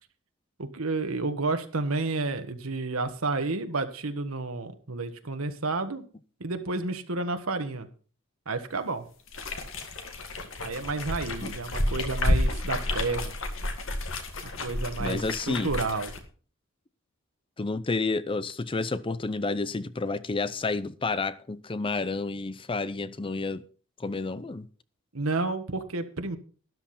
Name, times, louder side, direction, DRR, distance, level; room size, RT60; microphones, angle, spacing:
voice 1, 0.6-6.0 6.4-7.9 8.5-9.1 10.6-13.3 14.6-16.1 25.1-26.4, right 3 dB, 85° right, 1.4 m, -31 dB
sound 1, 9.3-16.2, left 1 dB, 70° left, 1.9 m, -30 dB
voice 2, 15.0-15.7 17.6-23.6 24.0-24.7, left 3 dB, 25° left, 0.5 m, -30 dB
12.5 x 11.0 x 4.2 m
head